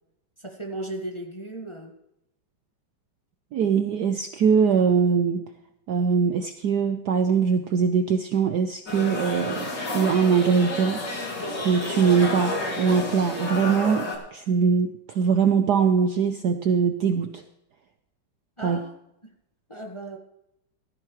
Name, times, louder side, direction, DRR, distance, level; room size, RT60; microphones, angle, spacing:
voice 1, 0.4-1.9 18.6-19.0 19.2-19.3 19.7-20.2, right 1 dB, 15° left, 1 dB, 1.2 m, -36 dB
voice 2, 3.5-5.4 5.9-11.0 11.6-17.4 18.6-18.8, right 6 dB, 65° right, 8 dB, 1.0 m, -22 dB
sound 1, 8.9-14.2, left 1 dB, 55° left, 3.2 m, -30 dB
16.5 x 14.0 x 3.1 m, 0.84 s
omnidirectional pair, 2.3 m